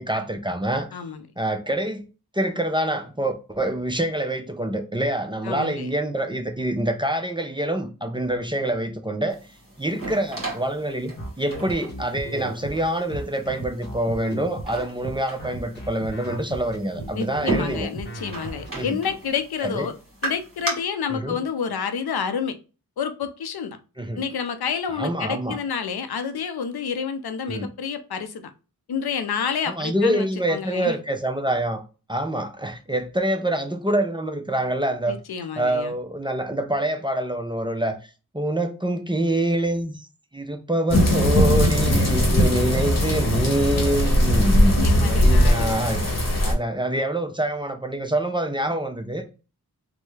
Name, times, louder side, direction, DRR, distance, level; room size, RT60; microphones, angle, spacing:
voice 1, 0.0-0.9 1.4-2.1 2.3-9.4 9.8-17.9 18.7-19.0 19.6-19.9 21.1-21.4 24.0-24.2 25.0-25.6 27.5-27.7 29.7-31.8 32.1-35.2 35.6-38.0 38.3-40.0 40.3-46.0 46.4-49.3, right 1 dB, 15° right, 0.5 m, -26 dB
voice 2, 0.9-1.2 5.4-5.9 17.1-19.9 20.2-22.6 23.0-23.8 24.2-28.5 28.9-31.0 35.1-35.9 44.8-45.7, left 6 dB, 80° left, 0.5 m, -29 dB
sound 1, 9.3-20.7, right 3 dB, 35° right, 1.6 m, -36 dB
sound 2, 11.2-18.7, right 1 dB, 25° left, 1.3 m, -36 dB
sound 3, 40.9-46.5, equal, 45° left, 1.0 m, -19 dB
3.2 x 2.1 x 3.1 m
cardioid pair, 40°, 38 cm